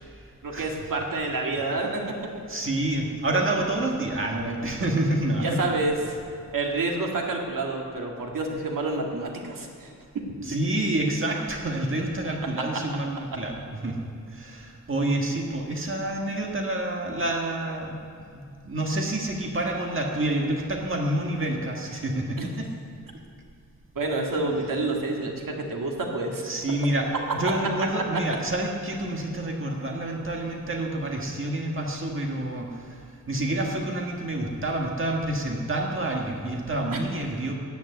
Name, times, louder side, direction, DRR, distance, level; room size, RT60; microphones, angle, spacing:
voice 1, 0.4-2.1 5.4-5.9 6.5-10.3 12.6-12.7 22.4-22.5 24.0-26.4 27.9-28.0 36.9-37.0, right 2 dB, 85° right, 0 dB, 2.1 m, -28 dB
voice 2, 2.5-5.4 10.4-13.9 14.3-18.0 18.3-22.6 26.4-27.1 27.3-32.7 33.3-37.5, right 1 dB, 40° right, 0 dB, 1.7 m, -28 dB
10.5 x 10.5 x 8.2 m, 2.4 s
wide cardioid pair, 145°, 32 cm